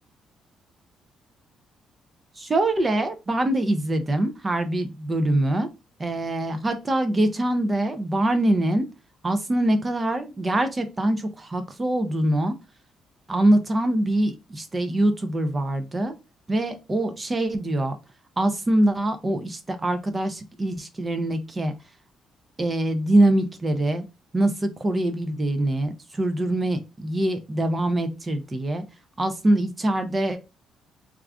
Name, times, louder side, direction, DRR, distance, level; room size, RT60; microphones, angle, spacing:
voice 1, 2.4-5.7 6.0-8.9 9.2-12.5 13.3-16.1 16.5-18.0 18.4-21.7 22.6-24.0 24.3-28.8 29.2-30.4, right 1 dB, 20° right, 8 dB, 0.4 m, -24 dB
2.4 x 2.3 x 3.3 m, 0.26 s
cardioid pair, 140°, 0 cm